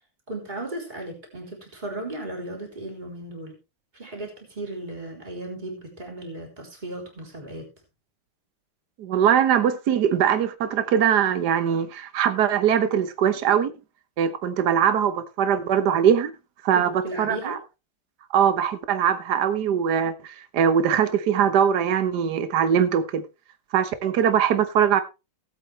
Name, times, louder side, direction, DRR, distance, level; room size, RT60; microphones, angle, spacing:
voice 1, 0.3-3.6 3.9-7.7 16.7-17.6, right 1 dB, 20° right, 3.8 m, -36 dB
voice 2, 9.0-13.7 14.2-16.3 16.6-17.6 18.3-23.2 23.7-25.0, right 8 dB, 60° right, 1.6 m, -21 dB
18.5 x 8.1 x 3.3 m
omnidirectional pair, 2.1 m